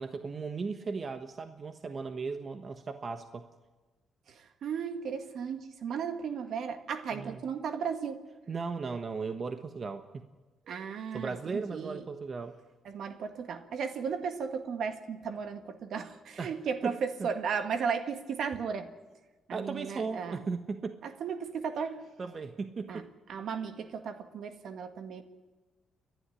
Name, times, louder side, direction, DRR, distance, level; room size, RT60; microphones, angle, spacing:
voice 1, 0.0-3.5 7.1-7.4 8.5-10.2 11.1-12.5 16.4-17.3 19.5-21.0 22.2-23.1, right 4 dB, 40° right, 7 dB, 1.2 m, -37 dB
voice 2, 4.3-8.2 10.7-12.0 12.9-18.9 19.5-20.4 21.0-22.1 22.9-23.0 23.3-25.2, right 6 dB, 65° right, 7 dB, 1.9 m, -35 dB
30.0 x 11.5 x 9.9 m, 1.2 s
cardioid pair, 90°, 0 cm